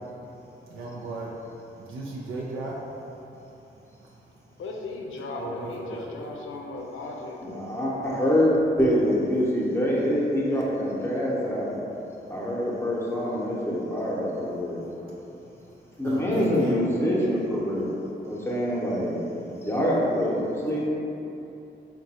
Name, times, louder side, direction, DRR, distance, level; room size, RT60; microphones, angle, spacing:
voice 1, 0.4-1.3 1.8-2.8 5.4-6.1 14.8-15.1 16.0-16.8, right 2 dB, 85° right, -5 dB, 0.5 m, -36 dB
voice 2, 4.6-8.2, left 3 dB, 85° left, 0 dB, 0.5 m, -37 dB
voice 3, 7.4-11.7 12.3-14.8 16.0-17.9 18.2-19.2 19.6-20.9, equal, 10° left, -5 dB, 0.7 m, -25 dB
3.7 x 2.2 x 4.1 m, 2.9 s
cardioid pair, 90°, 20 cm